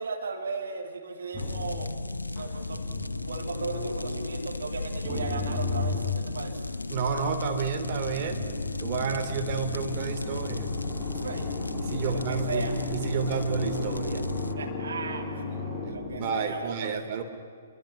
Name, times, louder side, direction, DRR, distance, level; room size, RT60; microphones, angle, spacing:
voice 1, 0.0-1.9 2.3-2.8 3.2-6.6 11.2-11.4 12.0-12.7 14.5-15.4 15.8-17.2, right 4 dB, 60° right, 2 dB, 3.2 m, -36 dB
sound 1, 1.3-4.4 5.0-6.8 7.8-16.3, left 3 dB, ahead, 7.5 m, -35 dB
sound 2, 1.4-14.5, left 2 dB, 80° left, 0.9 m, -35 dB
voice 2, 6.9-8.5 8.8-10.7 11.7-14.2 15.8-17.2, right 5 dB, 35° right, 4 dB, 2.9 m, -31 dB
28.5 x 23.5 x 6.0 m, 2.2 s
figure-of-eight pair, 120°, 0 cm